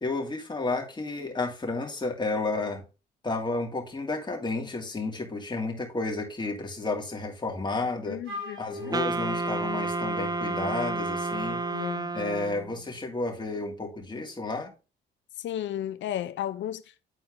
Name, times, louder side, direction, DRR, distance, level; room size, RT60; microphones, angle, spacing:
voice 1, 0.0-2.8 3.2-8.2 8.6-11.6 12.1-14.7, left 3 dB, 20° left, 2.6 m, -31 dB
voice 2, 8.1-9.0 11.7-12.1 15.4-17.0, left 11 dB, 70° left, 0.7 m, -34 dB
Wind instrument woodwind instrument, 8.2-11.9, right 1 dB, 80° right, 5.0 m, -40 dB
Wind instrument woodwind instrument 2, 8.9-12.8, right 3 dB, 20° right, 0.6 m, -31 dB
9.8 x 4.3 x 3.7 m
cardioid pair, 90°, 20 cm